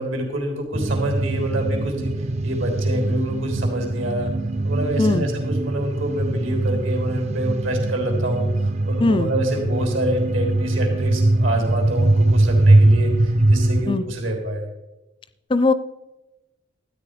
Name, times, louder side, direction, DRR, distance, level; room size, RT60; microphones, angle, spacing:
voice 1, 0.0-2.1 2.4-4.3 4.6-14.7, right 1 dB, 80° right, 2 dB, 3.5 m, -27 dB
sound 1, 0.7-13.9, right 2 dB, 35° right, 0.4 m, -21 dB
voice 2, 9.0-9.3 13.9-14.0 15.5-15.7, left 3 dB, 25° left, 14 dB, 0.4 m, -19 dB
13.0 x 9.6 x 5.0 m, 1.0 s
head